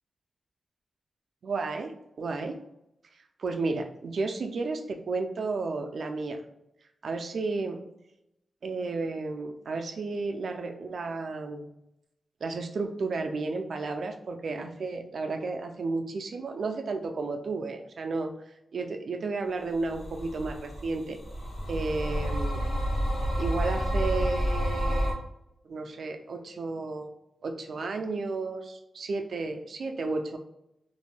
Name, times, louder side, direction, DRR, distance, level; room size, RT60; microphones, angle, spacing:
voice 1, 1.4-2.6 3.4-6.4 7.0-7.8 8.6-11.7 12.4-18.3 18.7-21.2 21.7-22.6 23.4-25.1 25.6-27.1 27.4-30.4, right 3 dB, 60° right, 5 dB, 0.3 m, -32 dB
sound 1, 19.9-25.1, equal, 85° left, 0.9 m, -29 dB
2.5 x 2.2 x 3.2 m, 0.83 s
wide cardioid pair, 130°, 0 cm